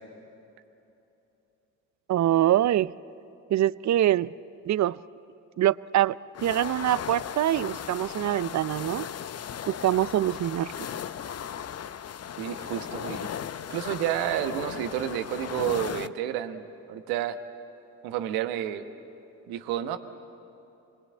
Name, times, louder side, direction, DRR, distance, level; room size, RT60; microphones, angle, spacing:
voice 1, 2.1-2.9 3.5-4.3 4.7-5.0 5.6-6.2 6.4-9.1 9.7-10.7, right 13 dB, 50° right, 19 dB, 0.6 m, -24 dB
sound 1, 6.3-16.1, left 9 dB, 45° left, 0.7 m, -37 dB
voice 2, 12.4-13.3 13.7-17.4 18.0-18.8 19.5-20.0, right 11 dB, 85° right, 8 dB, 1.2 m, -30 dB
25.0 x 21.5 x 8.5 m, 2.9 s
hypercardioid pair, 50°, 36 cm